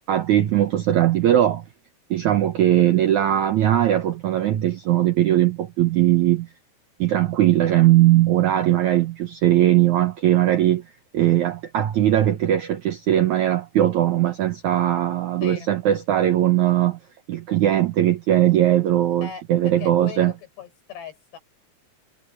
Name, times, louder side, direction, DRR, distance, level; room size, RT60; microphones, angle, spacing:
voice 1, 0.1-1.6 2.1-6.5 7.0-10.8 11.1-17.0 17.3-20.3, right 12 dB, 75° right, 1.8 m, -19 dB
voice 2, 15.4-15.7 19.2-21.4, left 8 dB, 80° left, 7.9 m, -39 dB
omnidirectional pair, 4.7 m